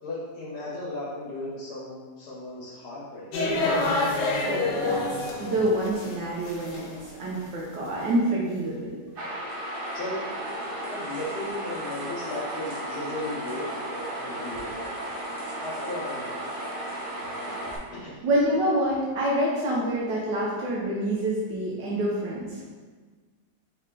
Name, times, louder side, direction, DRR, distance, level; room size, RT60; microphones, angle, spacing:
voice 1, 0.0-3.3 9.9-10.2 10.9-14.9 15.6-16.5 17.4-17.5 17.9-18.2, left 2 dB, 70° left, -5 dB, 1.4 m, -36 dB
sound 1, 3.3-6.2 6.4-7.1, left 2 dB, 85° left, 1.4 m, -27 dB
voice 2, 4.5-5.1 5.4-9.0 18.2-22.6, right 1 dB, 85° right, -4 dB, 1.3 m, -27 dB
sound 2, 9.1-17.8, right 1 dB, 45° right, 0.7 m, -34 dB
3.6 x 3.2 x 3.6 m, 1.4 s
omnidirectional pair, 1.9 m